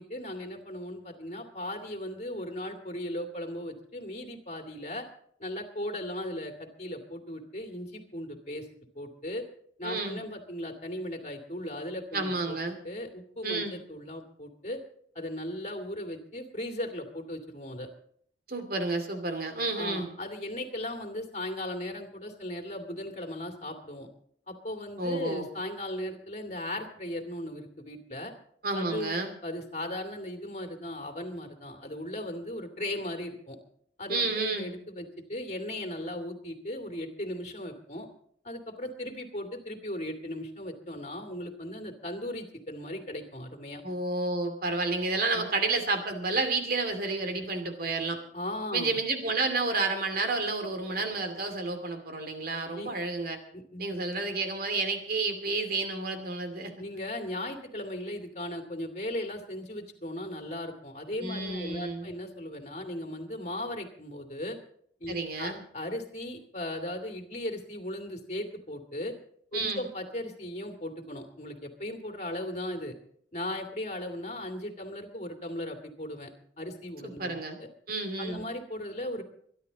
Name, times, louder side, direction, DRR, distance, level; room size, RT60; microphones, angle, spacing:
voice 1, 0.0-5.1 5.4-8.7 8.9-9.5 9.8-12.6 12.8-14.8 15.1-17.9 19.8-24.1 24.5-28.3 28.7-33.6 34.0-38.1 38.4-43.8 45.3-45.4 48.3-49.0 52.7-52.9 53.5-54.0 56.8-64.6 65.0-69.1 69.5-73.0 73.3-76.3 76.6-77.7 78.2-79.2, left 1 dB, 40° left, 5 dB, 2.5 m, -37 dB
voice 2, 9.8-10.2 12.1-12.8 13.4-13.7 18.5-20.1 25.0-25.5 28.6-29.3 34.1-34.7 43.8-48.2 48.7-53.4 53.8-56.7 61.2-62.1 65.1-65.6 69.5-69.8 77.0-77.6 77.9-78.4, right 3 dB, 55° right, 7 dB, 2.5 m, -30 dB
23.5 x 11.5 x 4.1 m, 0.64 s
head